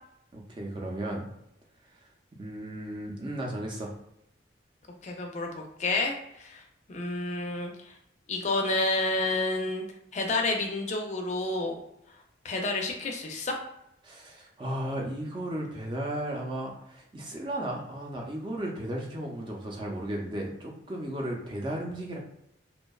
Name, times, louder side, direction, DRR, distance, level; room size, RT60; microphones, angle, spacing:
voice 1, 0.3-1.3 2.4-3.9 14.0-22.2, right 1 dB, 25° right, -1 dB, 0.4 m, -35 dB
voice 2, 5.0-6.6 6.9-7.9 8.3-9.8 10.1-11.7 12.4-13.5, left 2 dB, 40° left, 1 dB, 0.4 m, -29 dB
2.6 x 2.1 x 2.3 m, 0.80 s
head